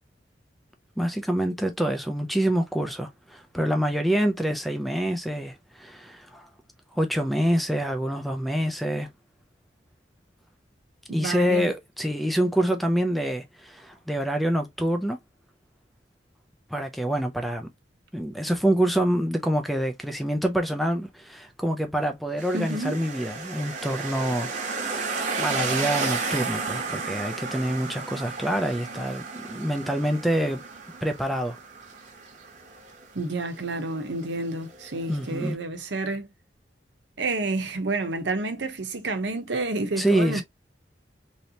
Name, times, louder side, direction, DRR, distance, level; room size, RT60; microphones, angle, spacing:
voice 1, 1.0-6.5 6.9-9.1 11.1-15.2 16.7-17.7 18.1-24.5 25.4-30.6 31.0-31.6 35.1-35.6 40.0-40.4, right 1 dB, ahead, 0.4 m, -26 dB
voice 2, 11.1-11.7 22.5-23.0 33.1-36.3 37.2-40.4, right 2 dB, 90° right, 0.8 m, -29 dB
car and bike passing, 22.4-35.5, right 4 dB, 45° right, 0.9 m, -33 dB
3.2 x 2.7 x 2.7 m
head